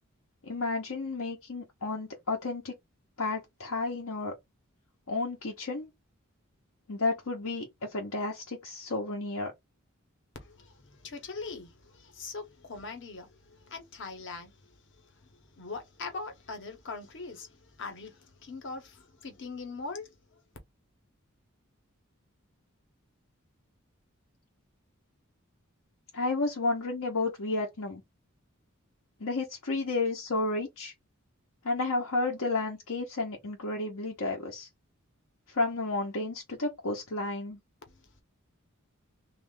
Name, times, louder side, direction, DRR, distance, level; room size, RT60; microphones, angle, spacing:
voice 1, 0.4-2.7 3.2-4.3 5.1-5.9 6.9-9.5 26.1-28.0 29.2-30.9 31.6-34.7 35.5-37.6, left 3 dB, 85° left, 0.9 m, -32 dB
voice 2, 10.4-13.3 13.6-14.5 15.6-20.1, left 4 dB, 60° left, 0.9 m, -41 dB
3.2 x 2.4 x 3.7 m
head